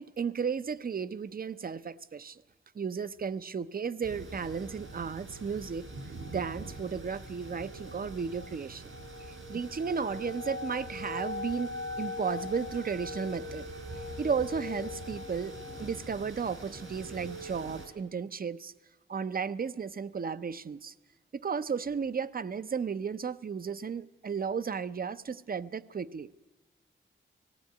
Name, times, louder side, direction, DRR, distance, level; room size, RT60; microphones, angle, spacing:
voice 1, 0.0-2.4 2.7-5.9 6.3-8.9 9.2-13.7 14.2-15.5 15.8-18.7 19.1-20.9 21.3-26.3, right 6 dB, 45° right, 15 dB, 0.6 m, -34 dB
sound 1, 4.0-17.9, left 1 dB, 75° right, 4.3 m, -41 dB
18.5 x 15.5 x 9.3 m, 1.1 s
wide cardioid pair, 125°, 21 cm